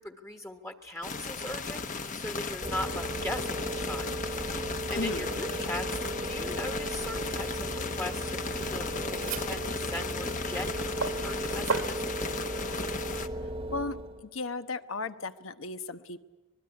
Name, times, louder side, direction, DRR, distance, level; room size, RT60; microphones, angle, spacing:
voice 1, 0.0-1.8 2.1-4.1 4.9-12.1, left 1 dB, 15° left, 5 dB, 1.4 m, -39 dB
sound 1, 1.0-13.3, left 4 dB, 35° left, 1.1 m, -36 dB
sound 2, 2.6-14.3, right 1 dB, 25° right, 1.3 m, -36 dB
voice 2, 4.9-5.3 13.7-16.2, left 3 dB, 75° left, 10 dB, 1.2 m, -35 dB
sound 3, 6.8-12.0, right 4 dB, 75° right, 2.0 m, -39 dB
25.0 x 21.5 x 9.8 m, 1.1 s
head